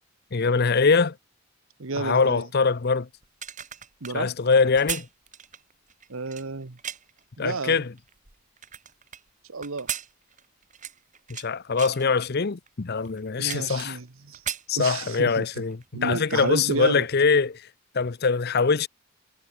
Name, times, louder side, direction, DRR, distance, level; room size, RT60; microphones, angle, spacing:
voice 1, 0.3-1.2 2.0-3.1 4.1-5.1 7.4-7.9 11.3-14.0 14.7-17.7 17.9-18.9, left 4 dB, 45° left, 0.6 m, -23 dB
voice 2, 1.8-2.4 4.0-4.3 6.1-6.8 7.4-7.8 9.5-9.9 13.4-14.4 14.8-15.4 15.9-17.0, right 3 dB, 65° right, 1.1 m, -31 dB
sound 1, 3.2-7.2 7.8-9.2 9.6-11.5 11.8-12.1 12.7-12.8 13.0-14.1 14.3-15.3 15.7-15.9, right 10 dB, 35° right, 2.7 m, -37 dB
head